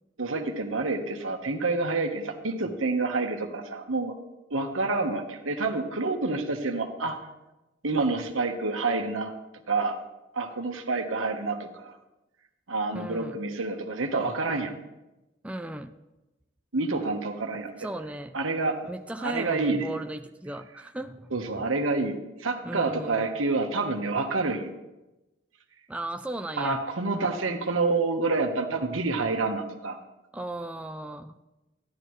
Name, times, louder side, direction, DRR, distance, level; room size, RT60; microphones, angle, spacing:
voice 1, 0.2-4.2 4.5-7.3 7.8-9.3 9.7-10.0 10.3-11.9 12.7-14.7 16.7-17.7 18.3-18.8 19.2-19.9 21.3-22.1 22.4-24.7 26.6-30.0, right 3 dB, 85° right, 4 dB, 1.3 m, -28 dB
voice 2, 12.9-13.4 15.4-15.9 17.8-18.3 18.8-21.6 22.6-23.3 25.9-26.8 30.3-31.3, right 1 dB, 5° right, 6 dB, 0.4 m, -36 dB
15.5 x 11.0 x 3.1 m, 1.0 s
head